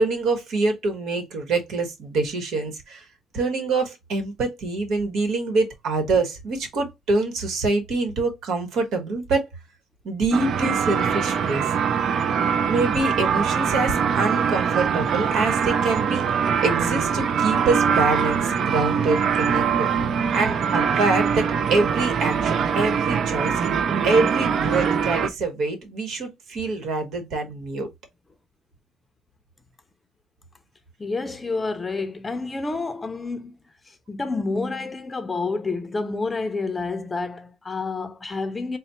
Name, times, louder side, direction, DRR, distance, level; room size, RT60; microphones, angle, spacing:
voice 1, 0.0-3.0 3.3-9.5 10.0-11.7 12.7-16.2 16.6-19.9 20.3-23.5 24.0-27.9, right 3 dB, 75° right, 1.3 m, -25 dB
sound 1, 10.3-25.3, right 7 dB, 55° right, 0.4 m, -23 dB
voice 2, 31.0-33.6 33.8-38.8, left 3 dB, 20° left, 0.5 m, -29 dB
4.1 x 2.1 x 4.2 m
cardioid pair, 130°, 0 cm